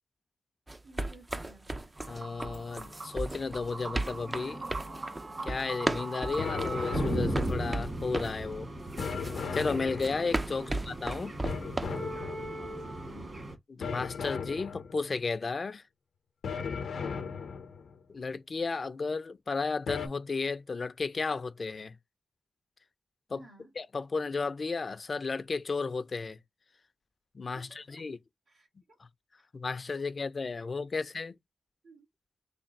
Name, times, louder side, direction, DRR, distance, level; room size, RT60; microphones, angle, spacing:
sound 1, 0.7-8.4 9.0-12.0, right 2 dB, 20° right, 0.4 m, -35 dB
voice 1, 0.8-2.0 10.5-10.7 12.5-13.4 17.0-17.4 23.3-23.7 27.5-28.0 28.5-29.0 29.4-29.5 30.2-30.3 30.9-31.0 31.8-32.1, right 2 dB, 85° right, 1.7 m, -55 dB
sound 2, 2.0-13.6, right 1 dB, 45° right, 1.5 m, -38 dB
voice 2, 2.1-4.6 5.4-8.7 9.5-11.4 13.7-15.8 18.1-22.0 23.3-23.4 23.8-26.4 27.3-28.2 29.0-29.1 29.5-31.4, left 4 dB, 45° left, 0.4 m, -33 dB
sound 3, 6.4-8.0 9.0-10.5 11.4-12.7 13.8-15.2 16.4-18.0 19.9-20.1, left 6 dB, 85° left, 0.6 m, -37 dB
3.3 x 2.3 x 3.9 m
wide cardioid pair, 95°, 0 cm